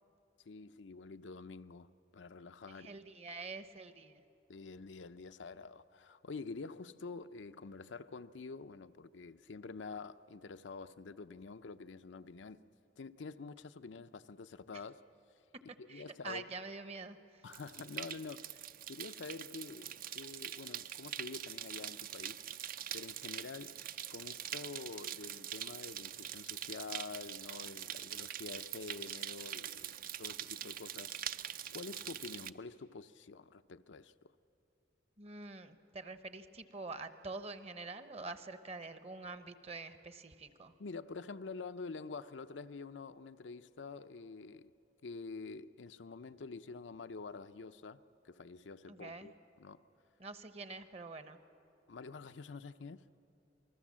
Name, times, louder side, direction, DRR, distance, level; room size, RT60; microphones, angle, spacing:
voice 1, 0.5-1.9 2.1-3.0 4.5-12.6 13.0-15.0 15.8-16.5 17.4-22.4 22.9-23.8 24.1-31.1 31.7-34.1 40.8-44.7 45.0-48.0 48.2-49.3 49.6-49.8 51.9-53.0, left 4 dB, 85° left, 0.6 m, -47 dB
voice 2, 2.7-4.2 15.9-17.4 35.2-40.7 48.9-49.3 50.2-51.4, right 3 dB, 35° right, 0.9 m, -46 dB
sound 1, 17.5-32.5, right 10 dB, 50° right, 0.5 m, -44 dB
27.5 x 20.0 x 7.4 m
head